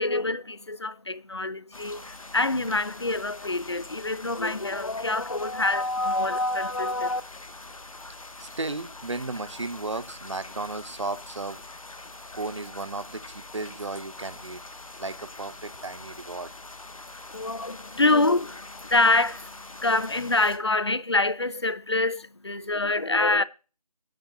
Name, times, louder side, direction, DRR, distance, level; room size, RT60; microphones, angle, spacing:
voice 1, 0.0-7.2 17.3-19.5 19.8-23.4, left 2 dB, 45° left, 0.4 m, -26 dB
sound 1, 1.7-20.6, left 2 dB, 60° left, 1.1 m, -44 dB
voice 2, 8.4-11.6 12.3-14.6 15.0-16.5, right 3 dB, 50° right, 0.8 m, -34 dB
10.5 x 5.6 x 5.5 m
figure-of-eight pair, 165°, 20 cm